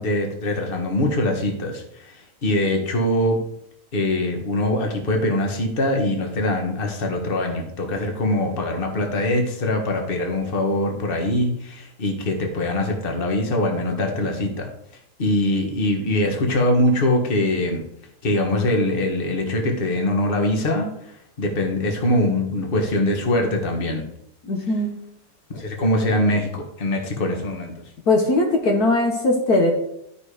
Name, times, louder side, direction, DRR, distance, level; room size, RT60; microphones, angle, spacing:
voice 1, 0.0-3.4 3.9-14.7 15.2-17.8 18.2-24.0 24.6-24.7 25.5-27.8, left 1 dB, 30° left, 2 dB, 1.7 m, -23 dB
voice 2, 24.5-24.9 28.1-29.7, left 2 dB, 60° left, 1 dB, 1.7 m, -19 dB
12.0 x 5.4 x 5.0 m, 0.74 s
omnidirectional pair, 1.9 m